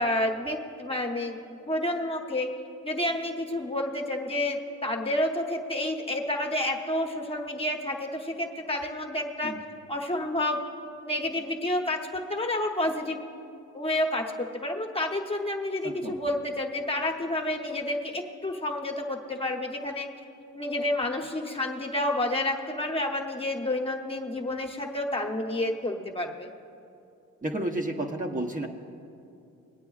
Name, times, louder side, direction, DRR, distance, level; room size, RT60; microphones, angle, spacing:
voice 1, 0.0-2.5 2.8-9.6 9.9-10.6 11.0-13.2 13.7-20.1 20.5-26.5, left 1 dB, 20° left, 1 dB, 1.0 m, -29 dB
voice 2, 15.8-16.2 27.4-28.7, right 1 dB, 25° right, 0 dB, 0.8 m, -31 dB
22.5 x 8.9 x 2.4 m, 2.6 s
cardioid pair, 90°, 30 cm